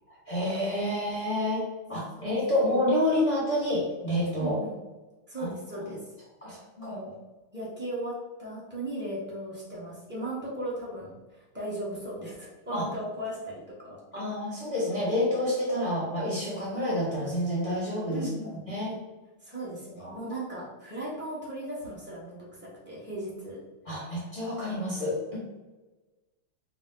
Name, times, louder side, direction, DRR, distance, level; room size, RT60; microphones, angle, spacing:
voice 1, 0.1-4.6 5.4-5.5 6.4-7.0 12.7-12.9 14.1-18.3 18.7-18.9 20.0-20.2 23.8-25.4, left 1 dB, 30° left, -7 dB, 0.6 m, -28 dB
voice 2, 4.4-4.7 5.3-6.0 6.8-7.2 7.5-14.0 18.1-18.9 19.4-23.6, right 1 dB, 15° right, -7 dB, 0.3 m, -37 dB
5.1 x 2.1 x 3.8 m, 1.1 s
omnidirectional pair, 2.4 m